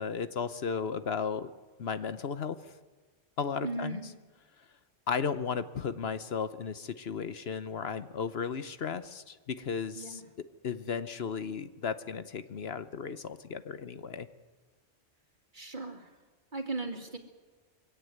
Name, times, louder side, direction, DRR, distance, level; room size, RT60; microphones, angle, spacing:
voice 1, 0.0-1.5 1.8-2.6 3.4-4.0 5.1-10.2 10.6-14.3, left 6 dB, 65° left, 12 dB, 1.1 m, -35 dB
voice 2, 3.6-4.1 9.9-10.3 15.5-16.1 16.5-17.2, right 3 dB, 45° right, 4 dB, 2.6 m, -37 dB
23.0 x 17.0 x 9.3 m, 1.3 s
omnidirectional pair, 1.2 m